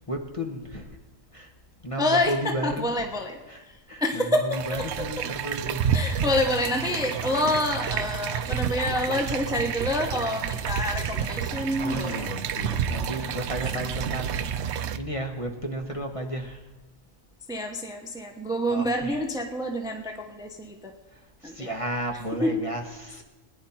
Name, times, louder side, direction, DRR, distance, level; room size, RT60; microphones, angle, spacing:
voice 1, 0.1-0.9 1.3-1.5 1.8-3.0 3.5-5.9 6.1-6.3 11.8-16.6 18.7-19.2 21.4-23.2, equal, 25° left, 3 dB, 1.2 m, -33 dB
voice 2, 2.0-3.4 4.0-4.8 5.9-12.3 12.7-12.8 17.5-20.9 21.4-21.7 22.4-22.5, left 1 dB, 5° right, 4 dB, 0.9 m, -27 dB
sound 1, 4.5-15.0, right 8 dB, 65° right, 0.9 m, -30 dB
19.0 x 10.5 x 4.3 m, 1.2 s
omnidirectional pair, 1.4 m